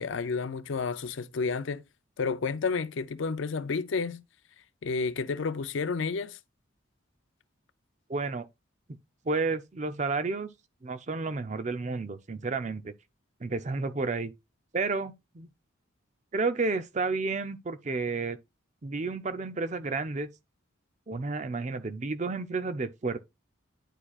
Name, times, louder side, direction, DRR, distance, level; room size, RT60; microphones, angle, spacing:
voice 1, 0.0-1.8 2.2-4.2 4.8-6.4, left 4 dB, 65° left, 0.5 m, -31 dB
voice 2, 8.1-8.5 9.2-10.5 10.8-12.9 13.4-14.3 14.7-15.5 16.3-18.4 18.8-20.3 21.1-23.2, right 3 dB, 35° right, 0.5 m, -31 dB
9.8 x 4.5 x 2.3 m
head